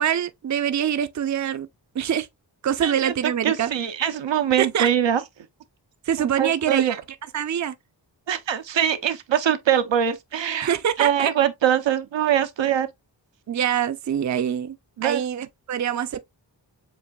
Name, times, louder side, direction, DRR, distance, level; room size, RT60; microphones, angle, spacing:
voice 1, 0.0-1.7 1.9-2.3 2.6-3.7 4.6-4.9 6.0-7.0 7.3-7.7 10.6-11.3 13.5-14.8 15.0-16.2, right 9 dB, 40° right, 0.5 m, -24 dB
voice 2, 2.8-3.1 3.4-5.2 6.4-6.9 8.3-10.7 11.0-12.9 15.0-15.2, right 9 dB, 80° right, 0.7 m, -22 dB
7.3 x 2.5 x 2.3 m
wide cardioid pair, 60°, 44 cm